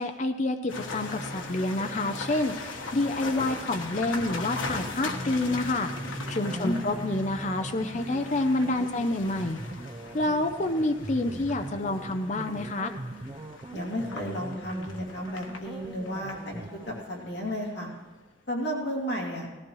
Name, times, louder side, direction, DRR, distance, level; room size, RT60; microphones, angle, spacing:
voice 1, 0.0-5.9 6.3-9.6 10.1-12.9, left 2 dB, 35° left, 7 dB, 0.6 m, -28 dB
sound 1, 0.7-17.8, left 2 dB, 80° left, 1.4 m, -39 dB
sound 2, 4.6-17.0, right 2 dB, 20° right, 0.4 m, -42 dB
voice 2, 6.5-6.8 13.7-17.9 18.5-19.5, equal, 60° left, -3 dB, 2.7 m, -33 dB
18.0 x 14.5 x 3.1 m, 1.3 s
head